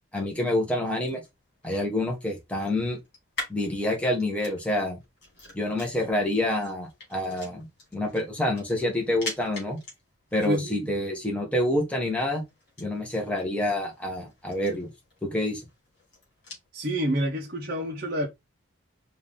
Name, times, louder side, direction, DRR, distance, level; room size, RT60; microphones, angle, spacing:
voice 1, 0.1-1.2 1.6-3.0 3.5-5.0 5.5-7.7 7.9-9.8 10.3-12.4 12.8-14.9 15.2-15.6, left 1 dB, 5° left, 1.3 m, -27 dB
sound 1, 0.9-16.7, left 2 dB, 50° left, 2.5 m, -45 dB
voice 2, 10.4-10.9 16.7-18.3, equal, 45° right, 0.9 m, -28 dB
4.9 x 2.8 x 3.6 m
head